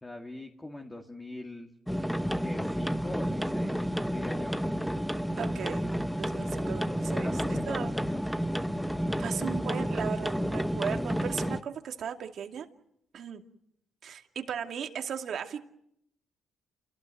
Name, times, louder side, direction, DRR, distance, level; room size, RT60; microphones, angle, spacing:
voice 1, 0.0-1.7 2.4-3.8 4.1-4.6 7.1-8.2, left 2 dB, 15° left, 3 dB, 2.2 m, -41 dB
sound 1, 1.9-11.6, equal, ahead, 1.0 m, -31 dB
voice 2, 5.4-5.9 6.2-7.3 7.7-7.9 9.2-12.7 13.1-13.4 14.0-15.6, right 8 dB, 65° right, 5 dB, 2.4 m, -36 dB
29.0 x 17.5 x 9.2 m, 0.76 s
cardioid pair, 90°, 0 cm